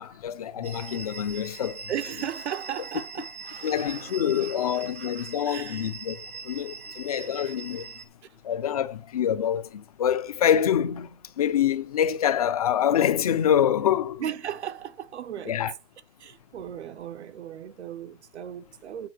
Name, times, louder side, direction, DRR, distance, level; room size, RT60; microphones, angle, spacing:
voice 1, 0.0-1.9 3.6-6.2 6.4-7.9 8.4-11.1 11.4-14.2 15.5-15.7, left 9 dB, 35° left, 0.6 m, -26 dB
sound 1, 0.6-8.0, right 5 dB, 15° right, 0.4 m, -42 dB
voice 2, 1.9-5.9 6.4-7.5 14.2-15.6 16.2-19.1, right 9 dB, 80° right, 1.2 m, -37 dB
8.7 x 4.7 x 6.1 m
hypercardioid pair, 180°, 33 cm